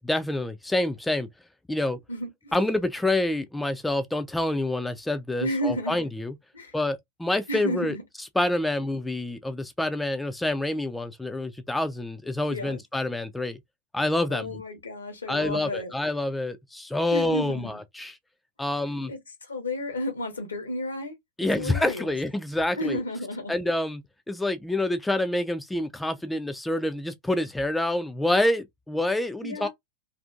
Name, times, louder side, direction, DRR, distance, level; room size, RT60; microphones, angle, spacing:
voice 1, 0.0-1.3 1.7-2.0 2.5-6.3 6.7-13.6 13.9-14.6 15.3-18.2 18.6-19.1 21.4-23.0 23.5-24.0 24.3-29.7, left 1 dB, 5° left, 0.3 m, -27 dB
voice 2, 2.1-2.5 5.4-6.0 6.5-6.7 7.5-8.0 12.5-12.8 14.3-15.9 17.1-17.7 19.1-21.1 21.6-22.1 22.8-23.5 29.4-29.7, left 1 dB, 75° left, 0.9 m, -32 dB
2.6 x 2.4 x 2.3 m
figure-of-eight pair, 90°, 0 cm